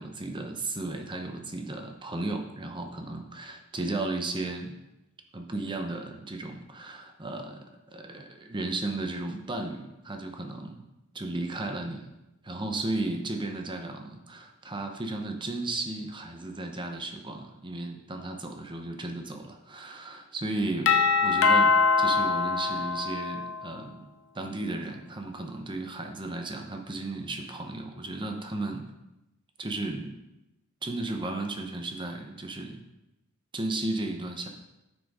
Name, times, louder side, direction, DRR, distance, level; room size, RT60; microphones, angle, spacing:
voice 1, 0.0-4.8 5.3-7.6 7.9-10.9 11.1-12.1 12.4-28.8 29.6-30.2 30.8-32.8 33.5-34.5, right 2 dB, 20° right, 3 dB, 0.9 m, -34 dB
Doorbell, 20.9-23.7, left 4 dB, 60° left, 0.6 m, -23 dB
9.5 x 6.1 x 3.7 m, 0.96 s
head